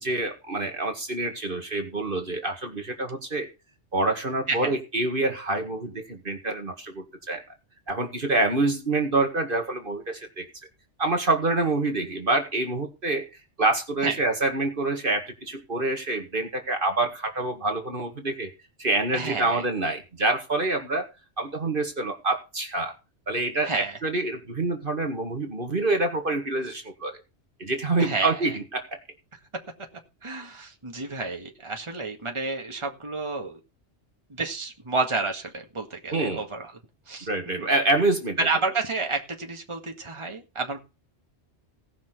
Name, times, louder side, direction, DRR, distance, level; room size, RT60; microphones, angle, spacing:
voice 1, 0.0-3.5 3.9-7.4 7.9-10.5 11.0-13.3 13.6-18.5 18.8-21.1 21.4-22.9 23.3-27.2 27.6-29.0 36.1-36.4 37.3-38.4, right 2 dB, 50° right, 5 dB, 2.1 m, -26 dB
voice 2, 19.1-19.6 23.6-24.0 28.0-28.4 30.2-33.6 34.3-36.7 37.1-37.7 38.4-40.8, right 3 dB, 25° right, 2 dB, 2.0 m, -30 dB
17.5 x 6.1 x 6.1 m, 0.28 s
omnidirectional pair, 1.2 m